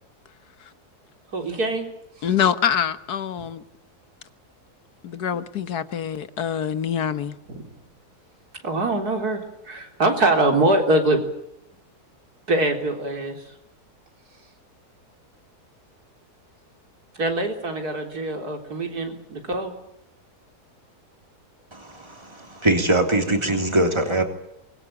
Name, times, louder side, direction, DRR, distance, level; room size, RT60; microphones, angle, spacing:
voice 1, 1.3-1.9 7.5-7.6 8.6-11.2 12.5-13.4 17.2-19.8, right 2 dB, 75° right, 4.2 m, -23 dB
voice 2, 2.2-3.6 5.0-7.4, left 8 dB, 80° left, 1.7 m, -25 dB
voice 3, 21.7-24.2, right 1 dB, 15° right, 3.2 m, -22 dB
24.5 x 21.5 x 8.9 m
omnidirectional pair, 1.6 m